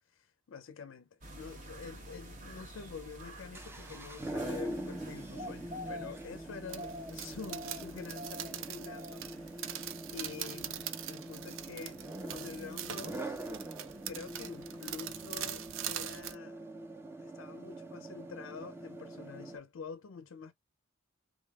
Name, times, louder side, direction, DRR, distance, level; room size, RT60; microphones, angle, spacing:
voice 1, 0.1-9.8 10.1-13.5 14.1-16.6 16.9-20.5, left 5 dB, 70° left, 0.4 m, -47 dB
sound 1, 1.2-10.5 10.7-10.8, equal, 40° right, 0.9 m, -48 dB
sound 2, 3.3-19.6, right 1 dB, 10° right, 0.4 m, -44 dB
sound 3, 6.7-16.4, right 11 dB, 70° right, 0.5 m, -43 dB
3.6 x 3.3 x 2.3 m
head